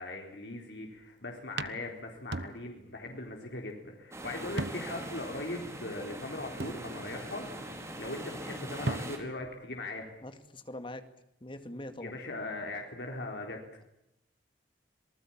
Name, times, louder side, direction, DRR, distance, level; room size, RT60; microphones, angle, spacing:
voice 1, 0.0-10.1 12.0-13.6, left 2 dB, 80° left, 1 dB, 4.1 m, -40 dB
sound 1, 0.8-1.0 1.6-3.0 3.3-3.4 4.6-5.1 5.5-5.6 6.6-7.4 8.5-8.6 8.9-9.5, right 2 dB, 75° right, 1.0 m, -38 dB
sound 2, 4.1-9.2, right 1 dB, 15° right, 4.7 m, -42 dB
voice 2, 10.2-11.0 11.4-12.2, left 1 dB, 30° left, 9 dB, 2.2 m, -43 dB
26.5 x 19.5 x 8.8 m, 0.80 s
head